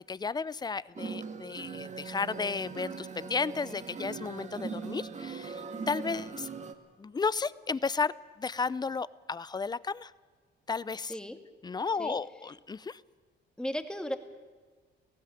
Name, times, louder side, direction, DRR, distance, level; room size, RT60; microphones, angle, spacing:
voice 1, 0.1-6.5 7.0-10.1 10.7-11.1 11.6-13.0, left 4 dB, 20° left, 19 dB, 0.6 m, -33 dB
sound 1, 1.0-6.7, right 5 dB, 35° right, 1.6 m, -40 dB
voice 2, 11.0-11.4 11.9-12.2 13.6-14.2, equal, 5° left, 7 dB, 1.8 m, -36 dB
19.0 x 16.0 x 9.2 m, 1.4 s
cardioid pair, 90°, 20 cm